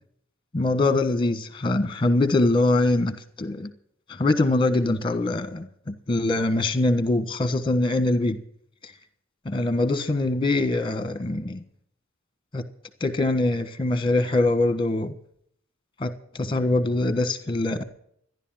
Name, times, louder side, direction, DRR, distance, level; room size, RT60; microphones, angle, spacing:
voice 1, 0.5-3.7 4.1-8.4 9.4-11.6 12.5-12.6 13.0-15.1 16.0-17.8, left 2 dB, 25° left, 1.3 m, -23 dB
14.0 x 11.0 x 7.4 m
head